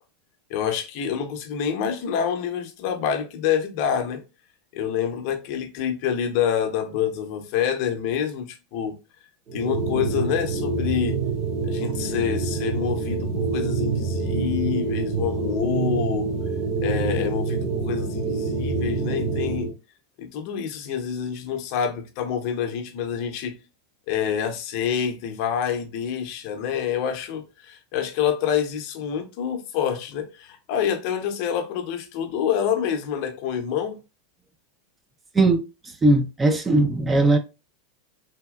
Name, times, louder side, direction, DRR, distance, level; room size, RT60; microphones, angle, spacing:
voice 1, 0.5-4.2 4.7-9.0 9.5-11.2 11.7-16.3 16.8-19.7 20.2-23.6 24.1-34.0, left 8 dB, 60° left, 0.6 m, -27 dB
sound 1, 9.5-19.7, right 3 dB, 40° right, 1.4 m, -26 dB
voice 2, 36.0-37.4, right 2 dB, 20° right, 0.5 m, -19 dB
3.4 x 2.7 x 2.3 m
hypercardioid pair, 110°, 0 cm